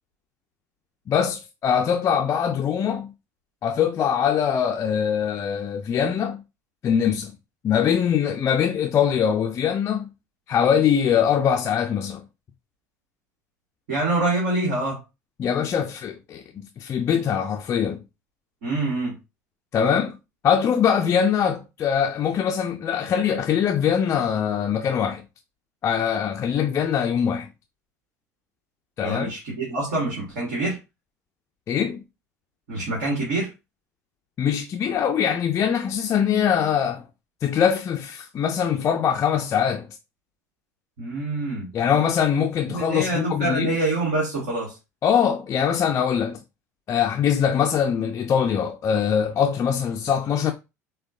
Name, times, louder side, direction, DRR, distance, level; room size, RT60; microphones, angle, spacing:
voice 1, 1.1-3.1 3.6-6.4 6.8-7.3 7.6-10.1 10.5-12.2 15.4-18.0 19.7-20.2 20.4-25.2 25.8-27.5 29.0-29.3 31.7-32.0 34.4-37.0 37.4-39.9 41.7-43.7 45.0-46.4 46.9-50.5, left 8 dB, 30° left, 0.5 m, -22 dB
voice 2, 13.9-15.0 18.6-19.2 29.0-30.8 32.7-33.5 41.0-41.7 42.7-44.8, right 2 dB, 60° right, 1.8 m, -25 dB
6.1 x 2.2 x 2.5 m
figure-of-eight pair, 70°, 9 cm